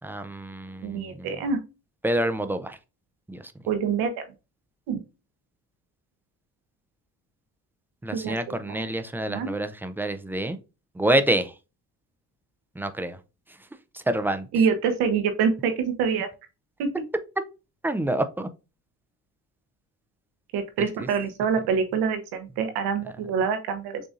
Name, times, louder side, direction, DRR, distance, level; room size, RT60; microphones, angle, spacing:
voice 1, 0.0-1.3 2.0-2.8 3.3-3.5 8.0-10.6 10.9-11.5 12.8-13.2 13.9-14.5 17.8-18.5 21.0-21.1, right 1 dB, 5° right, 0.3 m, -27 dB
voice 2, 0.8-1.6 3.7-4.2 4.9-5.0 8.1-8.4 8.7-8.9 9.3-9.5 14.5-15.7 16.0-16.3 16.8-16.9 20.5-24.0, right 6 dB, 80° right, 0.9 m, -25 dB
6.7 x 2.6 x 2.4 m
cardioid pair, 85°, 38 cm